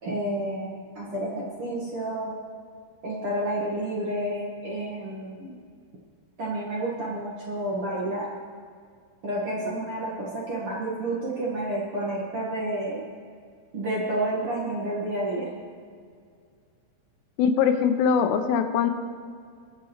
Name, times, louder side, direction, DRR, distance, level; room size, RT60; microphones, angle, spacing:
voice 1, 0.0-2.3 3.0-5.5 6.4-8.3 9.2-13.0 13.7-15.5, right 1 dB, 55° right, -5 dB, 1.6 m, -30 dB
voice 2, 17.4-18.9, left 7 dB, 85° left, 7 dB, 3.0 m, -22 dB
22.5 x 8.3 x 3.1 m, 2.2 s
omnidirectional pair, 4.8 m